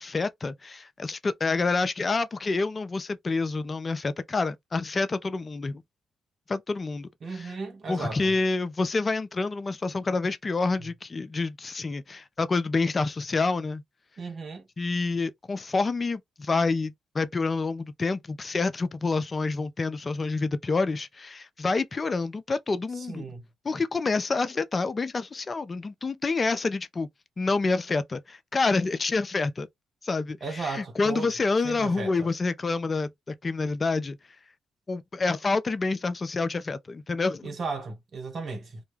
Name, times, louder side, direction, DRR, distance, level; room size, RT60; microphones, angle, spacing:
voice 1, 0.0-5.8 6.5-7.5 7.9-13.8 14.8-23.3 23.6-27.1 27.4-29.7 30.0-34.2 34.9-37.5, left 3 dB, 40° left, 0.4 m, -28 dB
voice 2, 7.2-8.3 14.2-14.6 22.9-23.4 30.4-31.3 31.6-32.3 37.4-38.8, right 4 dB, 55° right, 1.3 m, -35 dB
2.2 x 2.2 x 3.2 m
supercardioid pair, 60°, 0 cm